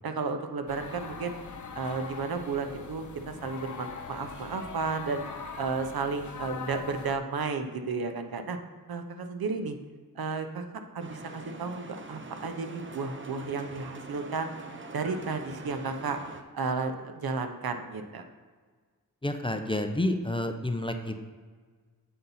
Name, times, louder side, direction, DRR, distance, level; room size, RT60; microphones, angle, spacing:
voice 1, 0.0-1.4 1.7-5.2 5.6-8.6 8.9-9.8 10.2-10.6 10.9-14.5 14.9-16.2 16.5-18.2, right 4 dB, 70° right, 7 dB, 0.8 m, -33 dB
sound 1, 0.7-7.2, left 5 dB, 50° left, 0.8 m, -42 dB
sound 2, 11.0-16.4, right 3 dB, 30° right, 0.7 m, -44 dB
voice 2, 19.2-21.3, left 1 dB, 15° left, 6 dB, 0.6 m, -30 dB
7.7 x 4.0 x 5.6 m, 1.5 s
wide cardioid pair, 70°, 37 cm